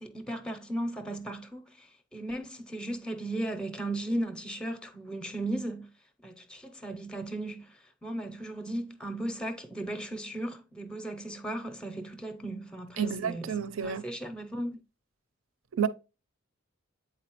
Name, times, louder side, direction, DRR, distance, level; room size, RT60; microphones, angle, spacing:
voice 1, 0.0-1.9 2.1-5.9 6.2-7.7 8.0-13.6 13.8-14.8, right 1 dB, 5° left, 0.5 m, -36 dB
voice 2, 13.0-14.0 15.7-15.9, right 7 dB, 70° right, 0.5 m, -30 dB
8.3 x 4.1 x 2.9 m
head